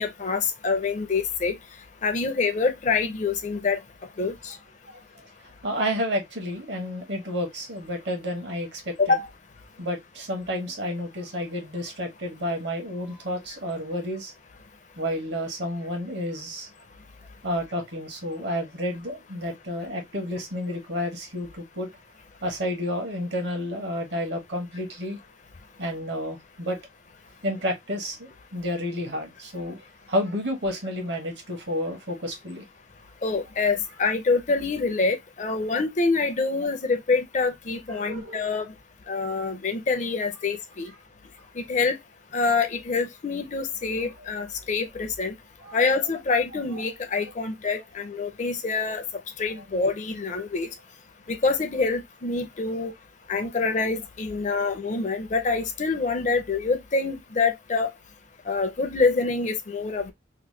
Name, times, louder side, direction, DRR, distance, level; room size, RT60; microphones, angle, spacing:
voice 1, 0.0-1.5 2.0-3.8 4.2-4.5 9.0-9.2 33.2-38.6 39.1-40.9 41.6-42.0 42.3-45.3 45.7-49.0 49.4-50.7 51.3-52.9 53.3-57.9 58.5-60.1, left 4 dB, 40° left, 0.5 m, -26 dB
voice 2, 5.6-8.9 9.8-14.3 15.0-16.7 17.4-21.9 22.4-25.2 25.8-26.8 27.4-29.8 30.1-32.6 37.9-38.5 45.6-45.8, equal, 65° right, 1.1 m, -30 dB
2.9 x 2.1 x 3.1 m
head